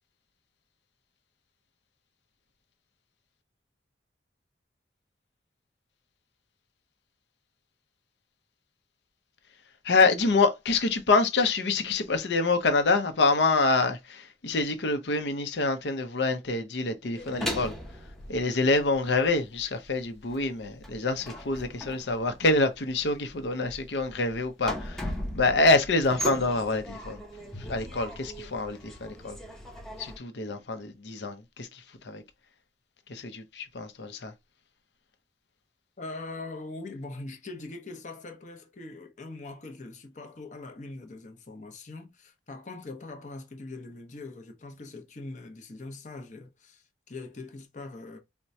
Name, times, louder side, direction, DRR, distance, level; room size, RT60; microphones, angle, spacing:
voice 1, 9.8-17.8 18.3-25.1 25.3-27.2 27.6-29.4 30.0-32.2 33.1-34.3, left 3 dB, 80° left, 0.7 m, -26 dB
sound 1, 17.1-19.3 19.6-30.2, equal, ahead, 0.6 m, -38 dB
voice 2, 36.0-48.2, left 2 dB, 45° left, 0.7 m, -42 dB
4.4 x 2.2 x 2.6 m
head